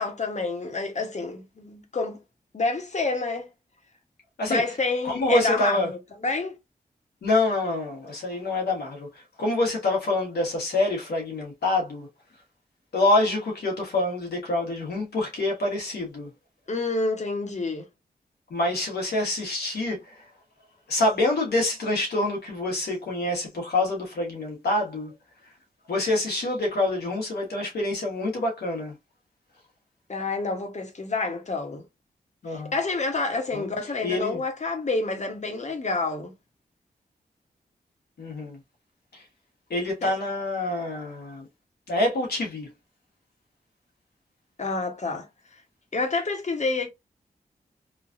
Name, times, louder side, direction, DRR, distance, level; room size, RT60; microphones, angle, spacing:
voice 1, 0.0-2.2 2.5-3.5 4.4-6.6 16.7-17.9 30.1-31.8 32.5-36.3 40.0-40.2 44.6-45.3 45.9-46.9, left 3 dB, 45° left, 1.0 m, -28 dB
voice 2, 5.0-5.9 7.2-12.1 12.9-16.3 18.5-20.2 20.9-25.1 25.9-28.9 32.4-32.7 33.5-33.6 34.0-34.4 38.2-38.6 39.1-39.2 39.7-41.5 41.9-42.7, left 2 dB, 90° left, 1.2 m, -26 dB
3.2 x 2.3 x 2.5 m
cardioid pair, 50°, 16 cm